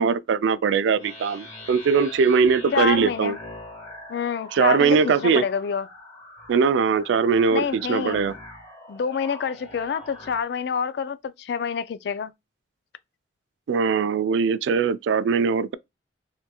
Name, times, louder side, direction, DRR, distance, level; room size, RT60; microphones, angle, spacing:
voice 1, 0.0-3.4 4.5-5.4 6.5-8.3 13.7-15.8, right 5 dB, 75° right, 0.3 m, -21 dB
sound 1, 1.0-10.4, left 1 dB, 20° left, 1.1 m, -42 dB
voice 2, 2.7-3.4 4.1-5.9 7.5-8.2 8.9-12.3, left 6 dB, 60° left, 0.3 m, -27 dB
3.5 x 2.8 x 2.2 m
head